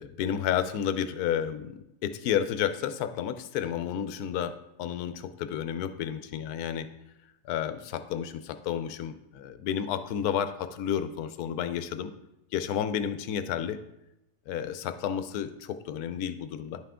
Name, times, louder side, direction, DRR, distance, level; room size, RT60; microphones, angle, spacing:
voice 1, 0.0-6.9 7.5-12.1 12.5-13.8 14.5-16.8, left 9 dB, 80° left, 11 dB, 1.1 m, -31 dB
10.5 x 5.7 x 3.6 m, 0.87 s
omnidirectional pair, 1.7 m